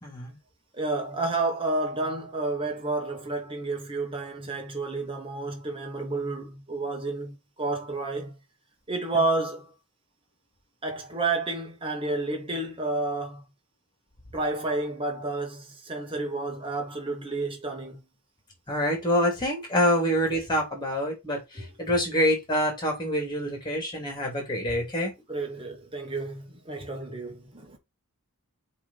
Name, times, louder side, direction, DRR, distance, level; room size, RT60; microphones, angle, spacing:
voice 1, 0.0-0.3 18.7-25.1, equal, 20° left, 2.7 m, -26 dB
voice 2, 0.7-8.3 8.9-9.7 10.8-13.4 14.3-18.0 21.5-21.7 25.3-27.8, right 2 dB, 25° right, 1.6 m, -30 dB
7.3 x 3.4 x 4.1 m
head